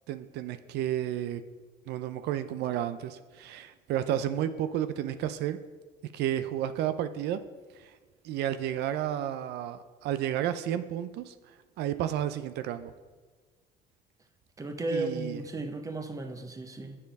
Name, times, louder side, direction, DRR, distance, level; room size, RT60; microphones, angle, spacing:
voice 1, 0.1-1.4 1.9-5.6 6.1-7.4 7.8-7.9 8.2-11.3 11.8-12.9 14.9-15.4, right 11 dB, 80° right, 11 dB, 0.5 m, -31 dB
voice 2, 14.6-17.0, right 2 dB, 20° right, 7 dB, 0.9 m, -34 dB
7.3 x 6.6 x 5.2 m, 1.4 s
cardioid pair, 110°, 17 cm